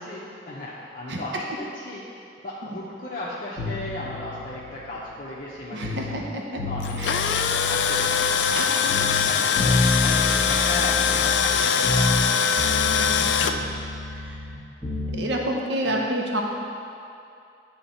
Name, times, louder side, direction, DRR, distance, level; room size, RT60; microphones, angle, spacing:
voice 1, 0.0-2.1 2.4-6.1 6.7-8.2 9.2-12.2 15.8-16.1, left 1 dB, 50° left, -6 dB, 0.7 m, -35 dB
sound 1, 3.6-6.2 6.6-8.6 8.9-12.3 12.6-15.2, left 2 dB, 10° right, 1.4 m, -29 dB
voice 2, 5.7-6.6 7.0-7.2 8.5-9.1 13.2-13.3 13.6-13.7 14.1-14.4 15.1-16.4, right 1 dB, 80° right, 0 dB, 0.8 m, -29 dB
Tools, 6.8-13.5, left 7 dB, 75° left, 0.3 m, -22 dB
9.7 x 3.6 x 4.2 m, 2.5 s
head